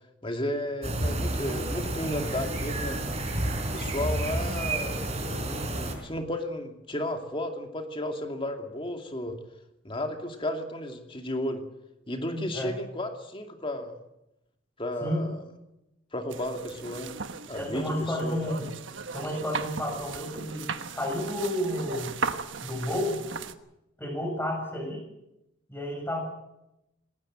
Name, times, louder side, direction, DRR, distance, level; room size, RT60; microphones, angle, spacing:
voice 1, 0.2-3.0 3.7-9.4 9.8-11.6 12.1-14.0 14.8-15.4 16.1-17.1 17.5-18.6, left 1 dB, 30° left, 5 dB, 2.6 m, -33 dB
sound 1, 0.8-5.9, right 1 dB, 35° right, 4.8 m, -30 dB
voice 2, 12.3-12.7 15.0-15.3 17.5-18.7 19.1-22.1 22.6-23.2 24.0-25.0 25.7-26.2, left 1 dB, 10° left, 2 dB, 7.2 m, -31 dB
sound 2, 16.3-23.5, right 5 dB, 90° right, 1.3 m, -37 dB
19.5 x 18.5 x 7.8 m, 0.87 s
head